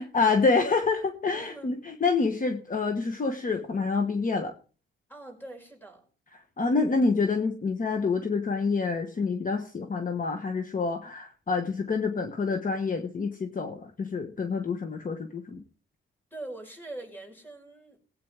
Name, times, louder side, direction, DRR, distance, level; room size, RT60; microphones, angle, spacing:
voice 1, 0.0-4.5 6.6-15.6, left 4 dB, 40° left, 5 dB, 1.3 m, -27 dB
voice 2, 1.3-1.7 5.1-6.1 16.3-18.0, right 2 dB, 10° left, 3 dB, 4.8 m, -43 dB
19.0 x 8.8 x 3.5 m, 0.38 s
cardioid pair, 110°, 21 cm